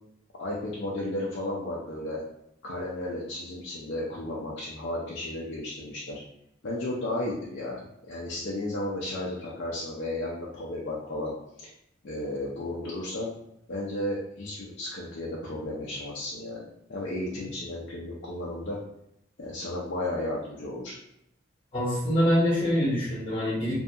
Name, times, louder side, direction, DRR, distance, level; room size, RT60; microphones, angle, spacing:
voice 1, 0.4-2.2 2.6-6.2 6.6-11.3 12.0-13.3 13.7-18.8 19.4-20.9, left 1 dB, 65° left, -5 dB, 0.5 m, -33 dB
voice 2, 21.7-23.7, equal, 30° left, -6 dB, 1.4 m, -25 dB
2.7 x 2.6 x 2.3 m, 0.77 s
head